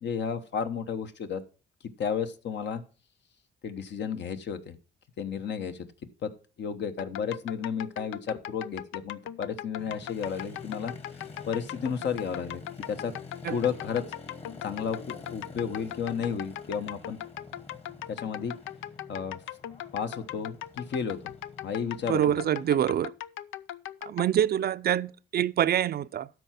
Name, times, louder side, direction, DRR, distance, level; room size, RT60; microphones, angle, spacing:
voice 1, 0.0-1.4 2.0-2.8 3.6-4.8 5.2-5.9 6.2-6.3 6.6-12.6 12.9-13.1 13.5-14.0 14.6-17.2 18.1-18.5 19.1-19.4 19.9-21.3 21.6-22.4, left 7 dB, 60° left, 1.1 m, -32 dB
sound 1, 7.0-24.4, left 12 dB, 90° left, 0.5 m, -40 dB
Motorcycle, 9.8-22.8, left 3 dB, 30° left, 1.6 m, -48 dB
voice 2, 22.1-23.1 24.0-26.3, right 10 dB, 50° right, 0.5 m, -26 dB
12.5 x 4.6 x 5.8 m
cardioid pair, 90°, 20 cm